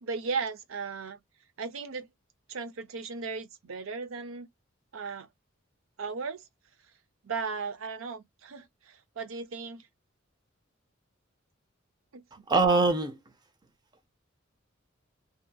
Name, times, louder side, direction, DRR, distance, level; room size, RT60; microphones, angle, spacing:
voice 1, 0.0-1.2 1.6-2.1 2.5-4.5 4.9-5.3 6.0-6.4 7.2-9.9 12.1-12.2, right 5 dB, 80° right, 0.6 m, -36 dB
voice 2, 12.5-13.2, right 3 dB, 20° right, 0.6 m, -23 dB
2.8 x 2.5 x 2.2 m
head